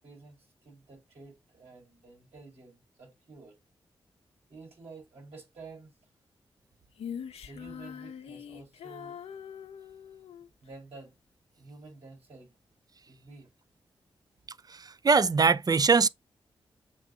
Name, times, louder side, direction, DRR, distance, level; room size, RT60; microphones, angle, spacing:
voice 1, 0.0-3.6 4.5-5.9 7.4-9.2 10.6-11.1 11.5-12.5 13.1-13.5, right 3 dB, 70° right, 4.2 m, -50 dB
Female singing, 7.0-10.5, left 8 dB, 85° left, 0.6 m, -43 dB
voice 2, 14.7-16.1, right 5 dB, 40° right, 0.5 m, -22 dB
7.5 x 2.6 x 4.9 m
supercardioid pair, 45°, 10 cm